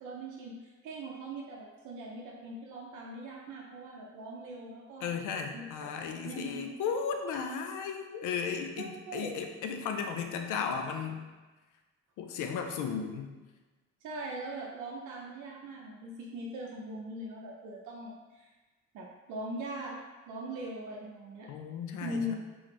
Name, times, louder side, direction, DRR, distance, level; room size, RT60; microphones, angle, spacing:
voice 1, 0.0-5.1 5.5-5.6 6.2-6.9 8.8-9.3 14.0-18.5 18.9-20.0 20.3-21.5 22.0-22.3, right 1 dB, 85° right, -2 dB, 0.6 m, -41 dB
voice 2, 5.0-11.2 12.2-13.4 21.5-22.3, left 6 dB, 85° left, 4 dB, 0.5 m, -35 dB
3.9 x 2.5 x 3.1 m, 1.2 s
cardioid pair, 90°, 30 cm